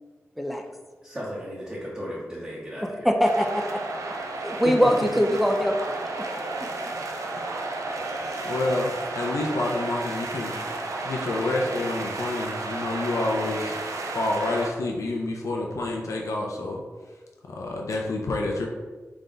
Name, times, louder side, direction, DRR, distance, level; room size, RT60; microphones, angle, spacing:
voice 1, 1.0-3.1, equal, 20° right, -7 dB, 0.8 m, -36 dB
voice 2, 3.0-3.8 4.4-6.3 6.6-6.7, equal, ahead, 3 dB, 0.3 m, -23 dB
sound 1, 3.2-14.7, right 2 dB, 90° right, 0.5 m, -32 dB
voice 3, 8.4-10.6 11.0-13.8 14.1-16.8 17.5-18.7, left 2 dB, 75° left, -1 dB, 0.5 m, -28 dB
3.8 x 3.4 x 3.8 m, 1.4 s
wide cardioid pair, 130°, 5 cm